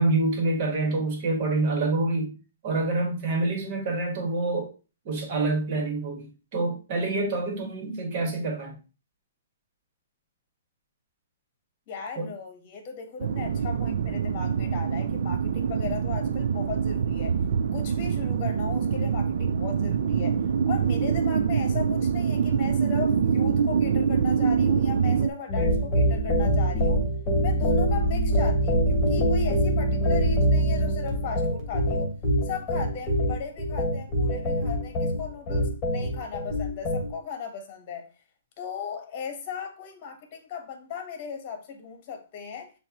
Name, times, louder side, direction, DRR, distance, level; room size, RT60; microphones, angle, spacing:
voice 1, 0.0-2.4 2.6-4.7 5.0-8.7 12.2-12.3, right 2 dB, 40° right, 1.7 m, -27 dB
voice 2, 11.9-17.4 17.7-27.0 27.4-32.1 32.4-38.1 38.6-42.7, left 7 dB, 35° left, 1.2 m, -37 dB
sound 1, 13.2-25.3, right 6 dB, 65° right, 0.3 m, -25 dB
sound 2, 25.5-37.1, equal, 20° left, 1.6 m, -24 dB
6.4 x 2.6 x 2.9 m
hypercardioid pair, 150°, 0 cm